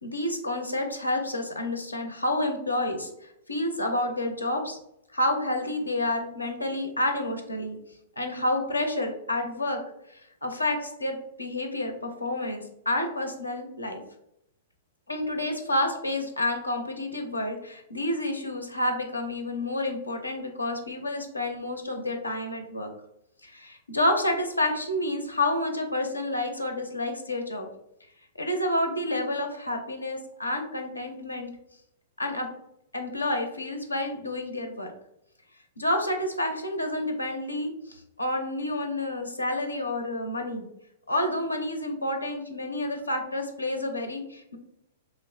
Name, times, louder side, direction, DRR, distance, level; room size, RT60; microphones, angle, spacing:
voice 1, 0.0-3.1 3.5-4.8 5.1-7.8 8.2-9.8 10.1-14.0 15.1-22.9 23.4-27.7 28.4-31.5 32.2-32.5 32.9-34.9 35.8-40.6 41.1-44.6, left 1 dB, 90° left, 4 dB, 0.6 m, -29 dB
3.0 x 2.0 x 4.0 m, 0.78 s
figure-of-eight pair, 105°, 0 cm